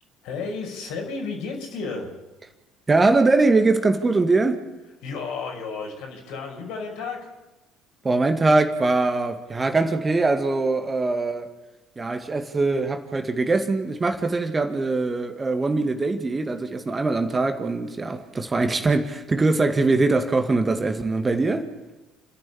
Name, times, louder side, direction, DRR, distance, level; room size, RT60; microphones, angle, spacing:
voice 1, 0.2-2.1 5.0-7.2, left 4 dB, 65° left, 5.5 m, -32 dB
voice 2, 2.9-4.6 8.0-11.5 12.0-21.7, right 3 dB, 25° right, 2.0 m, -22 dB
30.0 x 11.0 x 8.6 m
figure-of-eight pair, 55°, 0 cm